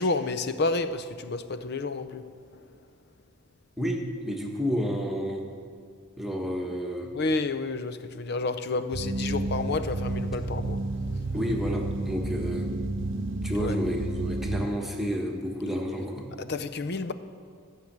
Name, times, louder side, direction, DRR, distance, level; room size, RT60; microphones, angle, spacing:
voice 1, 0.0-2.2 7.1-10.8 13.6-13.7 16.4-17.1, left 3 dB, 55° left, 0.6 m, -30 dB
voice 2, 3.8-5.4 6.2-7.1 11.3-12.7 13.4-16.3, equal, ahead, 1.3 m, -30 dB
sound 1, 8.9-14.7, right 2 dB, 65° right, 0.6 m, -31 dB
15.0 x 6.5 x 8.7 m
head